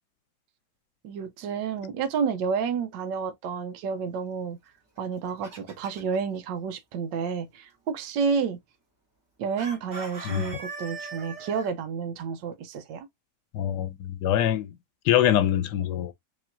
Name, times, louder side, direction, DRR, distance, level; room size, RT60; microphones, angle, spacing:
voice 1, 1.0-4.6 5.0-8.6 9.4-13.1, right 6 dB, 85° right, 1.4 m, -30 dB
Chicken rooster, 5.0-6.2 9.6-11.7, right 3 dB, 40° right, 1.9 m, -40 dB
voice 2, 13.5-14.7 15.1-16.1, left 11 dB, 75° left, 1.2 m, -24 dB
5.0 x 3.1 x 2.5 m
omnidirectional pair, 1.9 m